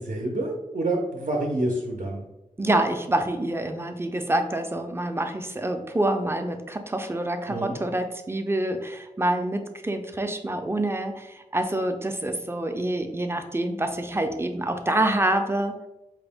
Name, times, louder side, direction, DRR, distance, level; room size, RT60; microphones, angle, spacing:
voice 1, 0.0-2.2 7.5-7.8, right 1 dB, 65° right, -1 dB, 0.6 m, -28 dB
voice 2, 2.6-15.8, right 1 dB, 15° right, 6 dB, 0.4 m, -26 dB
4.9 x 2.0 x 3.4 m, 0.97 s
wide cardioid pair, 60°, 14 cm